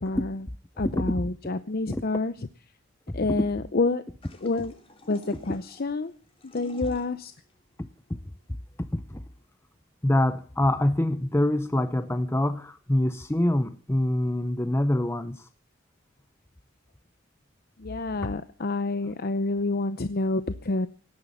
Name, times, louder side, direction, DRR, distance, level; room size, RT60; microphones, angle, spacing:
voice 1, 0.0-0.5 0.8-2.5 3.1-4.0 4.4-4.7 5.1-6.1 6.4-7.3 17.8-20.9, left 3 dB, 50° left, 0.7 m, -28 dB
sound 1, 4.2-9.5, left 1 dB, 30° left, 2.8 m, -50 dB
voice 2, 7.8-8.2 8.8-9.2 10.0-15.5 18.2-18.3, left 1 dB, 15° left, 0.7 m, -25 dB
18.0 x 10.5 x 7.1 m
head